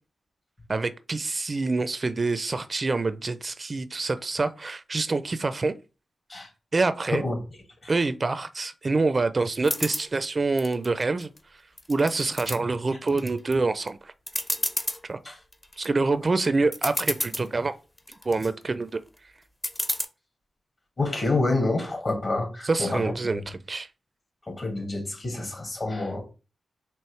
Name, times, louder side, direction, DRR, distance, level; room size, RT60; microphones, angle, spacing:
voice 1, 0.7-5.7 6.7-7.2 7.9-11.3 11.9-14.1 15.1-15.2 15.8-17.7 18.3-18.9 22.6-23.9, right 3 dB, 45° right, 0.4 m, -26 dB
sound 1, 9.6-10.1 10.6-11.4 11.8-12.6 13.1-13.5 13.9-14.0 14.3-15.0 15.5-15.9 16.4-16.5 16.7-17.5 18.0-18.5 19.6-20.0, left 1 dB, 20° left, 0.6 m, -30 dB
voice 2, 21.0-23.4 24.5-26.2, left 2 dB, 45° left, 1.9 m, -28 dB
4.5 x 2.9 x 3.2 m
cardioid pair, 50°, 0 cm